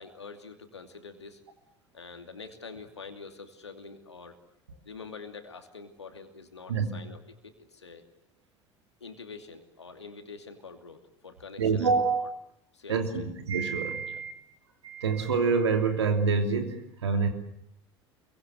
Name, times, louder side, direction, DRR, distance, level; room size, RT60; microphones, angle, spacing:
voice 1, 0.0-1.4 1.9-4.4 4.9-8.0 9.0-11.9 12.2-12.3 12.7-13.3 14.1-14.2, left 4 dB, 90° left, 6 dB, 2.7 m, -46 dB
voice 2, 6.7-7.0 11.6-12.3 12.9-14.3 14.8-17.3, right 5 dB, 80° right, 5 dB, 3.0 m, -26 dB
28.5 x 23.5 x 8.0 m, 0.72 s
figure-of-eight pair, 65°, 14 cm